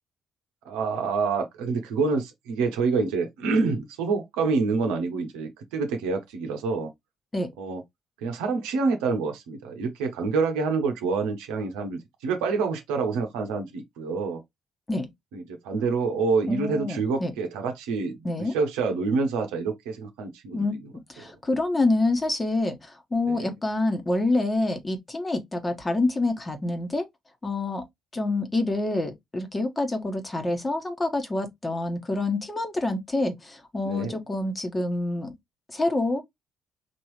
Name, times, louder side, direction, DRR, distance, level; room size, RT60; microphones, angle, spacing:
voice 1, 0.6-6.9 7.6-7.8 8.2-14.4 15.3-20.9 23.3-23.5 33.8-34.2, right 4 dB, 75° right, 0.8 m, -27 dB
voice 2, 16.5-17.3 18.2-18.5 20.5-20.7 21.1-27.0 27.4-27.8 28.1-35.3 35.7-36.2, left 2 dB, 25° left, 1.3 m, -27 dB
4.4 x 3.0 x 3.1 m
hypercardioid pair, 45°, 0 cm